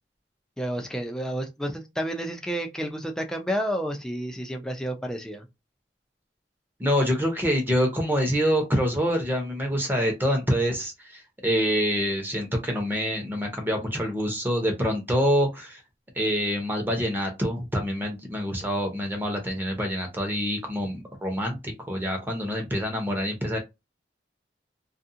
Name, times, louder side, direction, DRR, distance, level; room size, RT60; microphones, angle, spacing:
voice 1, 0.6-5.5, equal, 5° left, 0.5 m, -30 dB
voice 2, 6.8-15.8 16.1-23.6, equal, 10° right, 0.8 m, -26 dB
2.5 x 2.3 x 2.7 m
head